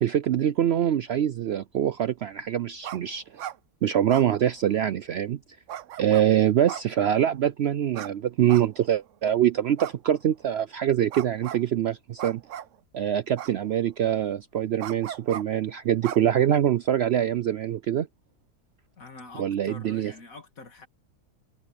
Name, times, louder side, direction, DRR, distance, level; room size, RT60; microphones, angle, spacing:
voice 1, 0.0-3.2 3.8-5.4 6.0-12.4 12.9-18.1 19.4-20.1, right 10 dB, 80° right, 0.5 m, -24 dB
sound 1, 2.8-3.0 3.3-3.6 4.1-4.9 5.7-6.3 6.7-7.4 7.9-8.1 8.5-9.1 9.8-10.5 11.1-11.6 12.2-12.8 13.4-13.9 14.8-15.4 16.0-16.8, right 11 dB, 65° right, 0.9 m, -37 dB
voice 2, 19.0-20.9, left 3 dB, 60° left, 2.8 m, -45 dB
omnidirectional pair, 1.7 m